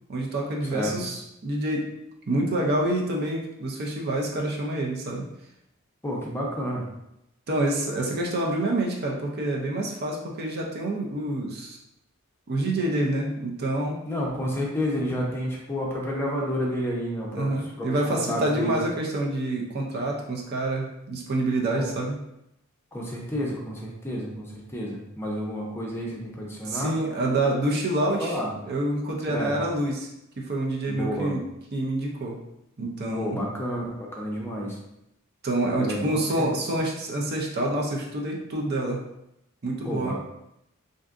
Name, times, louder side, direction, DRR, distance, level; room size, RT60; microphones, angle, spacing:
voice 1, 0.1-1.8 2.3-5.3 7.5-11.8 12.5-14.0 17.3-22.2 26.6-28.4 28.6-30.1 30.4-31.4 31.7-32.4 32.8-33.4 35.4-39.0 39.6-40.1, right 1 dB, 50° right, -1 dB, 0.5 m, -27 dB
voice 2, 6.0-6.8 14.1-18.8 21.8-21.9 22.9-26.9 28.2-28.5 29.3-29.5 30.9-31.3 33.2-34.8 35.8-36.6 39.8-40.1, equal, 10° left, -3 dB, 0.6 m, -30 dB
3.5 x 2.6 x 2.5 m, 0.83 s
head